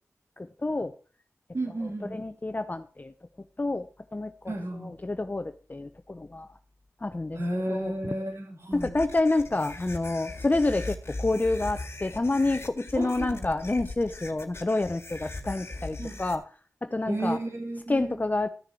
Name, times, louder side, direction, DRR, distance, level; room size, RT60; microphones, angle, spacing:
voice 1, 0.4-0.9 1.8-3.1 3.6-6.5 7.0-7.4 7.7-7.9 8.7-16.5 16.8-17.4 17.9-18.5, left 2 dB, 30° left, 10 dB, 0.7 m, -28 dB
voice 2, 1.5-2.2 4.5-4.9 7.4-8.9 13.0-13.5 16.0-16.2 17.1-18.2, right 1 dB, 50° right, 2 dB, 3.8 m, -32 dB
sound 1, 8.7-16.4, left 2 dB, 45° left, 1.8 m, -39 dB
14.0 x 6.5 x 4.6 m, 0.38 s
cardioid pair, 55°, 6 cm